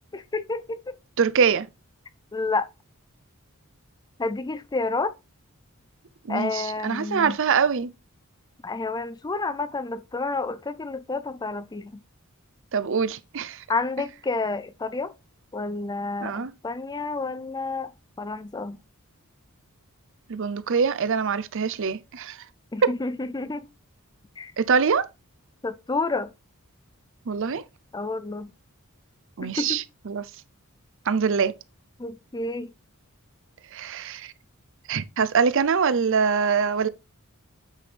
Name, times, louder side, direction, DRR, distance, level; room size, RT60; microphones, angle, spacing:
voice 1, 0.1-1.0 2.3-2.7 4.2-5.1 6.3-7.3 8.6-11.9 13.7-15.1 15.5-17.9 18.2-18.8 22.7-23.6 24.4-24.5 25.6-26.3 27.9-28.5 29.4-29.8 32.0-32.7, left 3 dB, 20° left, 0.4 m, -29 dB
voice 2, 1.2-1.7 6.2-7.9 12.7-13.6 16.2-16.5 20.3-22.4 24.6-25.1 27.3-27.6 29.4-30.3 31.1-31.5 33.7-34.3 34.9-36.9, right 6 dB, 60° right, 0.6 m, -24 dB
9.1 x 6.0 x 3.3 m
head